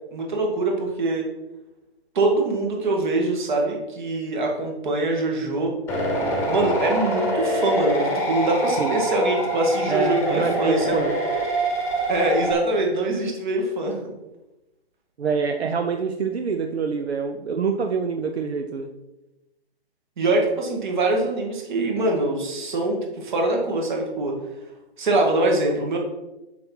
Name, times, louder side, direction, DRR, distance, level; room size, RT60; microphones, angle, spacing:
voice 1, 0.1-1.3 2.1-5.7 6.5-11.1 12.1-14.0 20.2-24.4 25.0-26.0, right 2 dB, 50° right, 1 dB, 2.4 m, -23 dB
sound 1, 5.9-12.5, right 1 dB, 10° left, 1.2 m, -25 dB
voice 2, 9.9-11.1 15.2-18.9, right 5 dB, 80° right, 5 dB, 0.8 m, -25 dB
7.5 x 5.9 x 4.5 m, 0.99 s
hypercardioid pair, 150°, 31 cm